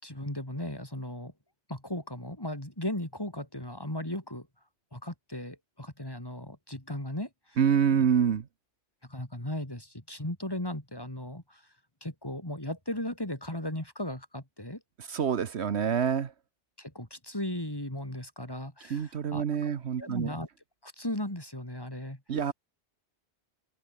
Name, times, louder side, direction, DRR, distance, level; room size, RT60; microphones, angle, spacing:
voice 1, 0.0-1.3 1.7-4.5 4.9-7.6 7.9-8.1 9.0-11.7 12.0-14.8 16.8-19.7 20.0-20.5 20.8-22.2, left 1 dB, 20° left, 3.7 m, -37 dB
voice 2, 7.6-8.4 15.1-16.3 18.9-20.3 22.3-22.5, right 7 dB, 70° right, 1.3 m, -26 dB
omnidirectional pair, 1.2 m